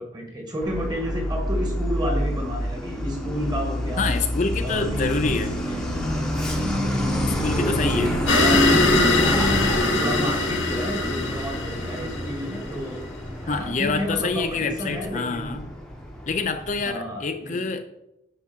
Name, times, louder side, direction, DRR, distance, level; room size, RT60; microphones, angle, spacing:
voice 1, 0.0-4.2 4.6-6.0 6.7-9.1 9.7-13.0 13.4-15.6 16.8-17.5, equal, 20° right, 2 dB, 1.7 m, -31 dB
Truck, 0.6-16.8, equal, 5° left, 1.0 m, -28 dB
voice 2, 4.0-5.5 7.2-8.1 13.5-15.7 16.3-17.9, left 4 dB, 40° left, 7 dB, 0.5 m, -27 dB
sound 1, 4.7-9.7, equal, 70° right, 1.0 m, -30 dB
sound 2, 8.3-12.9, left 2 dB, 85° left, 1.7 m, -22 dB
9.6 x 5.8 x 4.5 m, 0.89 s
head